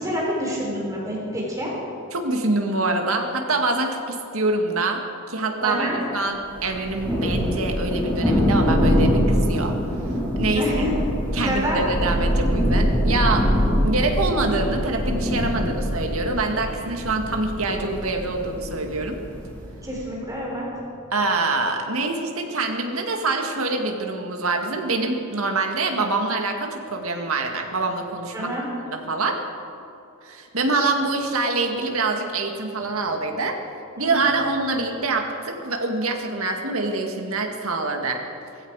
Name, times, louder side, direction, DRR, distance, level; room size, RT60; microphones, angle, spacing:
voice 1, 0.0-1.8 5.6-6.0 10.5-11.0 11.4-11.8 19.7-21.1 28.3-28.6 34.0-34.3, equal, 15° right, -4 dB, 4.4 m, -28 dB
voice 2, 2.1-5.0 5.3-9.8 10.4-10.7 11.3-13.5 13.8-19.2 21.1-28.5 28.9-29.4 30.2-33.6 34.0-38.2, right 3 dB, 70° right, 3 dB, 2.0 m, -25 dB
Thunder, 6.6-19.8, equal, 10° left, 4.8 m, -23 dB
19.0 x 15.5 x 4.9 m, 2.6 s
head